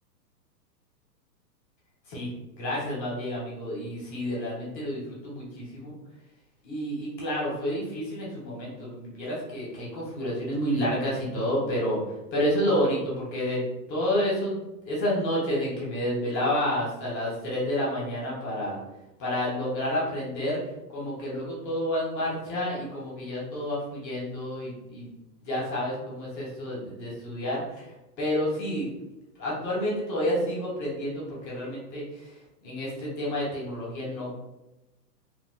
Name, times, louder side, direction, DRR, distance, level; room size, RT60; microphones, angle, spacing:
voice 1, 2.5-5.9 6.6-12.0 12.3-13.6 13.9-18.8 19.2-20.6 20.9-25.1 25.4-28.9 29.4-32.4 32.6-34.3, equal, ahead, -21 dB, 0.3 m, -29 dB
2.8 x 2.1 x 3.9 m, 0.99 s
hypercardioid pair, 145°, 50 cm